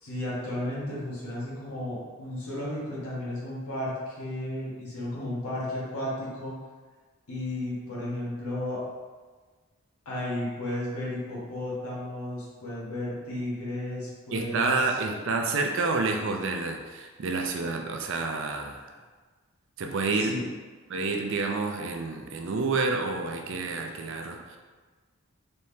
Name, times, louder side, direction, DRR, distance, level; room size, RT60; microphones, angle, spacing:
voice 1, 0.0-6.5 7.3-8.8 10.0-14.8 20.2-20.5, left 1 dB, 85° left, -7 dB, 1.5 m, -33 dB
voice 2, 14.3-18.9 19.8-20.4 20.9-24.6, right 3 dB, 55° right, 3 dB, 0.4 m, -29 dB
4.2 x 3.5 x 2.7 m, 1.4 s
head